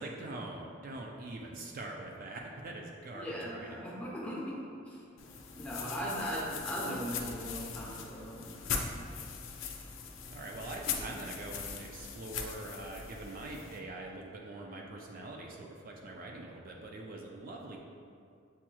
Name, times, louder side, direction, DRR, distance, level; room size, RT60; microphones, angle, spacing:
voice 1, 0.0-3.9 10.3-17.8, right 2 dB, 45° right, 0 dB, 0.4 m, -43 dB
voice 2, 3.1-4.6 4.9-5.0 5.6-9.1, equal, 5° left, -6 dB, 0.7 m, -39 dB
sound 1, 5.2-13.8, left 6 dB, 80° left, 0.4 m, -41 dB
7.1 x 2.9 x 2.3 m, 2.4 s
head